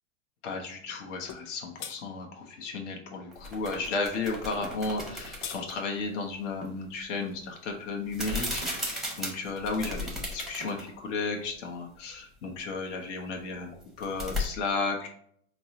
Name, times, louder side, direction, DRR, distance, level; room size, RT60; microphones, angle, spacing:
voice 1, 0.4-13.7 14.0-15.1, left 3 dB, 70° left, 2 dB, 0.8 m, -34 dB
sound 1, 1.3-1.5 1.8-2.0 5.0-5.6, left 8 dB, 45° left, 0.4 m, -39 dB
sound 2, 3.3-5.8 8.1-10.9 11.2-11.3 13.8-14.5, left 1 dB, ahead, 0.7 m, -35 dB
sound 3, 4.6-4.9 6.6-7.0 8.6-8.9 10.6-11.0, equal, 20° left, 1.0 m, -44 dB
4.4 x 2.0 x 2.7 m, 0.64 s
hypercardioid pair, 120°, 38 cm